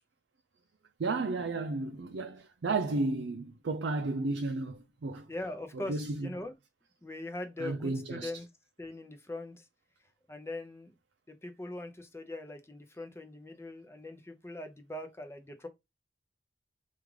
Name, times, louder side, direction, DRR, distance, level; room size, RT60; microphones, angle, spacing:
voice 1, 1.0-5.3 5.7-6.4 7.6-8.3, right 3 dB, 75° right, 0.5 m, -33 dB
voice 2, 5.3-6.5 7.0-8.5 8.8-9.7 10.3-10.9 11.3-15.7, left 2 dB, 15° left, 0.6 m, -41 dB
4.8 x 2.5 x 3.2 m
head